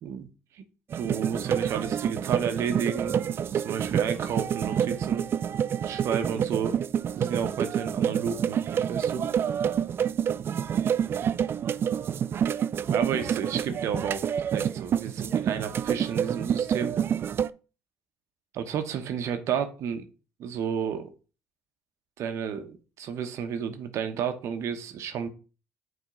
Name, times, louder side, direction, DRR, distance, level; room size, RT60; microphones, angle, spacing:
sound 1, 0.9-17.5, right 8 dB, 45° right, 0.3 m, -28 dB
voice 1, 0.9-5.3 5.8-6.8 7.2-9.3 12.9-14.3 14.5-16.9 18.5-20.1 20.4-21.1 22.2-25.3, right 7 dB, 65° right, 8 dB, 1.0 m, -31 dB
8.8 x 3.6 x 3.7 m, 0.34 s
supercardioid pair, 70°, 5 cm